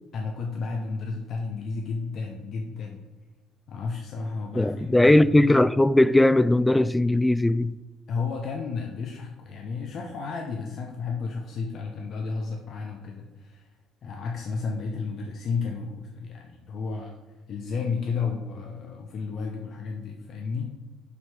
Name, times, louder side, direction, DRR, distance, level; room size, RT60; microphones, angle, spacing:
voice 1, 0.1-3.1 3.7-5.6 8.1-13.7 14.0-17.2 17.5-20.7, left 4 dB, 55° left, 0.9 m, -32 dB
voice 2, 4.6-7.7, left 1 dB, 10° left, 0.3 m, -19 dB
7.1 x 4.5 x 4.9 m
hypercardioid pair, 60°, 0 cm